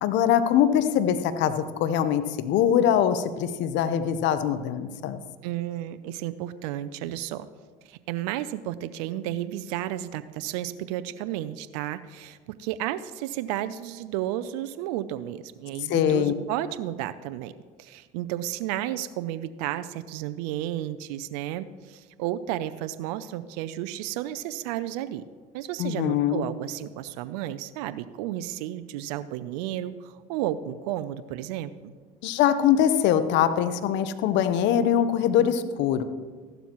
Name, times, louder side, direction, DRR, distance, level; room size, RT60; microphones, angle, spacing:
voice 1, 0.0-5.2 15.9-16.3 25.8-26.5 32.2-36.0, left 9 dB, 65° left, 11 dB, 0.9 m, -23 dB
voice 2, 5.4-7.5 7.8-17.5 17.8-25.2 25.5-31.9, right 13 dB, 80° right, 13 dB, 0.5 m, -32 dB
14.5 x 12.0 x 3.0 m, 1.5 s
hypercardioid pair, 75°, 20 cm